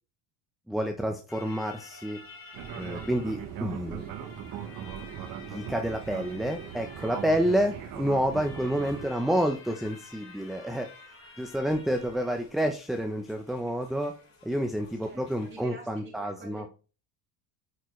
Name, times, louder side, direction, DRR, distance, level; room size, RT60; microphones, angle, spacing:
voice 1, 0.7-2.2 2.8-4.0 5.5-10.9 11.4-14.1 14.4-16.6, equal, ahead, 5 dB, 0.4 m, -29 dB
sound 1, 1.3-15.6, left 4 dB, 35° left, 2.7 m, -51 dB
Fixed-wing aircraft airplane, 2.5-9.1, right 9 dB, 55° right, 1.0 m, -39 dB
voice 2, 15.0-16.7, right 1 dB, 30° right, -1 dB, 1.8 m, -47 dB
9.3 x 4.4 x 3.0 m, 0.35 s
cardioid pair, 115°, 40 cm